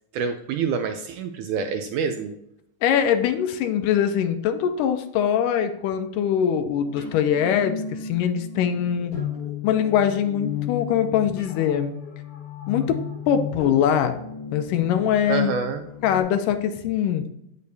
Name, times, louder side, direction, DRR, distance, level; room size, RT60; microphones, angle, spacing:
voice 1, 0.1-2.3 15.3-15.8, right 6 dB, 80° right, 6 dB, 1.8 m, -27 dB
voice 2, 2.8-9.1 9.6-12.0 12.7-14.2 14.5-15.5 16.0-17.3, left 9 dB, 80° left, 8 dB, 2.1 m, -22 dB
sound 1, 6.8-16.2, left 7 dB, 45° left, 3.0 m, -35 dB
8.3 x 6.6 x 2.7 m, 0.80 s
omnidirectional pair, 4.0 m